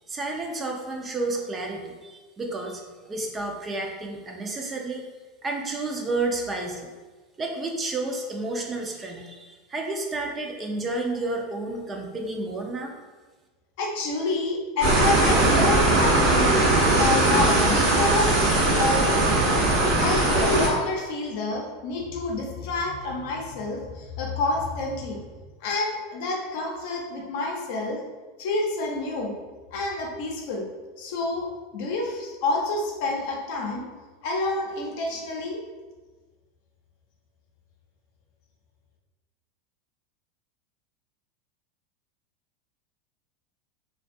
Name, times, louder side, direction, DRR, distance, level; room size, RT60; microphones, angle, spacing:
voice 1, 0.1-5.0 5.4-6.9 7.4-12.9, right 2 dB, 25° right, 1 dB, 0.4 m, -31 dB
voice 2, 13.8-16.7 17.0-18.4 18.8-19.2 20.0-25.2 25.6-28.0 28.4-29.3 29.7-30.6 31.0-31.5 31.7-33.8 34.2-35.6, left 2 dB, 65° left, 0 dB, 0.5 m, -28 dB
sound 1, 14.8-20.7, right 2 dB, 70° right, 0.9 m, -20 dB
2.4 x 2.2 x 2.5 m, 1.3 s
hypercardioid pair, 105°, 0 cm